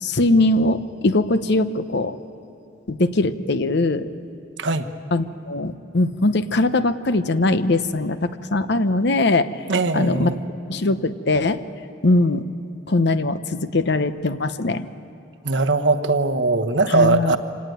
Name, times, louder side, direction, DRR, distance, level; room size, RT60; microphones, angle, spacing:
voice 1, 0.0-2.2 2.9-4.1 5.1-9.5 9.9-10.4 10.7-11.6 12.0-12.4 12.9-14.9 16.9-17.4, left 2 dB, 65° left, 11 dB, 0.9 m, -21 dB
Bass guitar, 7.8-14.1, left 2 dB, 30° right, 3.6 m, -48 dB
voice 2, 9.7-10.4 15.4-17.4, right 3 dB, 70° right, 8 dB, 1.2 m, -20 dB
26.0 x 18.0 x 9.3 m, 2.9 s
head